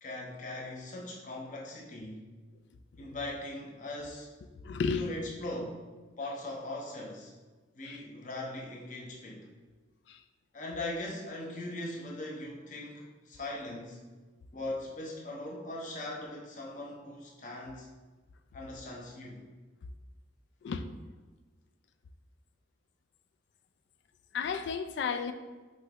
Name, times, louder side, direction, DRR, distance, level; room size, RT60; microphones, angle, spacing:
voice 1, 0.0-2.3 3.0-4.3 5.0-5.8 6.2-7.3 7.8-9.5 10.5-14.0 14.5-17.9 18.5-19.4, left 1 dB, 40° left, -2 dB, 0.7 m, -40 dB
voice 2, 4.6-5.0 7.9-8.0 10.1-10.2 20.6-20.8 24.3-25.3, left 5 dB, 70° left, 10 dB, 0.3 m, -32 dB
5.6 x 3.1 x 2.9 m, 1.3 s
head